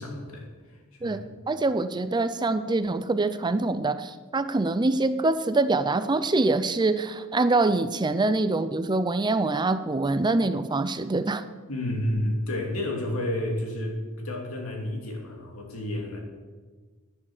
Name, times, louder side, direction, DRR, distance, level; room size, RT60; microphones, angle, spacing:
voice 1, 0.0-1.2 11.7-16.2, left 1 dB, 70° left, 1 dB, 2.9 m, -31 dB
voice 2, 1.0-11.4, right 2 dB, 20° right, 11 dB, 0.5 m, -25 dB
11.0 x 10.0 x 7.2 m, 1.4 s
head